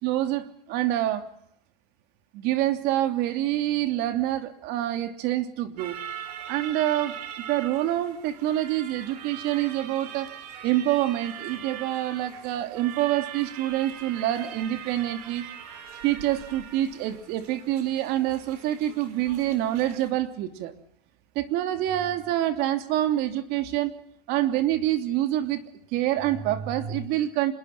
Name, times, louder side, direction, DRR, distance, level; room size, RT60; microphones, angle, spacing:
voice 1, 0.0-1.2 2.3-6.0 6.5-7.2 7.5-10.3 10.6-15.4 16.0-20.7 21.3-23.9 24.3-25.6 25.9-27.5, right 13 dB, 50° right, 7 dB, 3.0 m, -26 dB
sound 1, 5.8-20.1, right 9 dB, 75° right, 4.9 m, -41 dB
26.5 x 21.5 x 7.4 m, 0.73 s
supercardioid pair, 135°, 20 cm